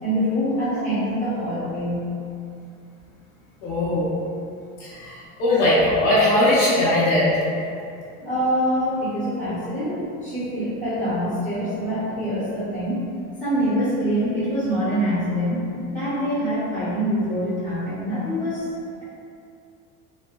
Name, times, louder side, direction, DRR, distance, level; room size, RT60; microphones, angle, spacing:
voice 1, 0.0-2.1 8.2-13.1 13.4-18.7, equal, 5° left, -14 dB, 1.0 m, -25 dB
voice 2, 3.6-4.1 4.8-7.4, left 1 dB, 85° left, -9 dB, 0.8 m, -19 dB
3.2 x 2.1 x 2.3 m, 2.5 s
supercardioid pair, 115°, 41 cm